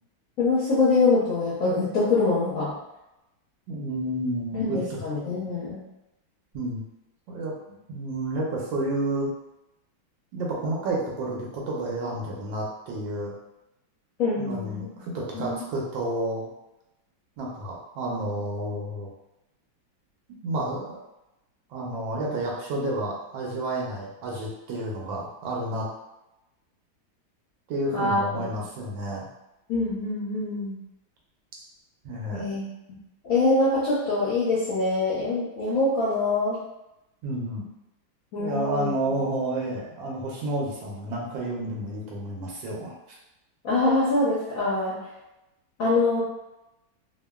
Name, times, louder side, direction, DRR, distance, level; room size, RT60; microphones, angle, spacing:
voice 1, 0.4-2.7 4.5-5.8 14.2-14.8 15.3-15.5 27.9-28.2 29.7-30.8 32.3-32.7 33.2-36.6 38.3-38.9 43.6-45.0 45.8-46.2, left 3 dB, 70° left, -8 dB, 0.8 m, -24 dB
voice 2, 3.7-5.0 6.5-6.8 7.3-9.3 10.3-13.3 14.4-16.5 17.4-19.1 20.4-21.0 21.7-25.9 27.7-29.3 32.0-32.5 37.2-37.6 38.4-43.2, right 1 dB, 75° right, -3 dB, 1.3 m, -30 dB
3.3 x 2.1 x 2.2 m, 0.92 s
omnidirectional pair, 2.2 m